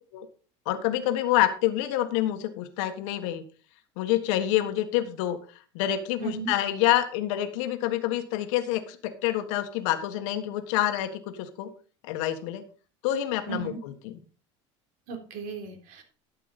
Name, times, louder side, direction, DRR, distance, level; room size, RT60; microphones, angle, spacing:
voice 1, 0.6-3.4 4.0-5.4 5.7-11.7 12.0-12.6 13.0-14.2, left 13 dB, 75° left, 7 dB, 1.6 m, -27 dB
voice 2, 6.2-6.5 13.5-13.8 15.1-16.0, right 5 dB, 65° right, 4 dB, 3.7 m, -35 dB
12.5 x 8.3 x 4.2 m, 0.38 s
supercardioid pair, 110°, 16 cm